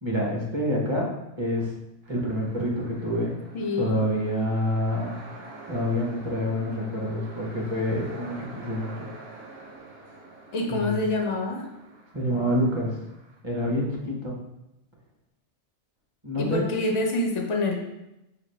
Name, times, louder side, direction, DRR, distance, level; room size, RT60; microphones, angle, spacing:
voice 1, 0.0-1.1 1.4-1.7 2.1-3.4 3.8-5.2 5.7-9.1 10.7-11.0 12.1-13.0 13.4-14.3 16.2-16.7, equal, 30° right, -2 dB, 0.6 m, -27 dB
sound 1, 2.0-13.4, right 2 dB, 65° right, 0.9 m, -46 dB
voice 2, 3.5-4.0 10.5-11.6 16.4-17.8, left 2 dB, 45° left, 1 dB, 0.4 m, -26 dB
5.1 x 2.4 x 3.1 m, 0.91 s
omnidirectional pair, 1.2 m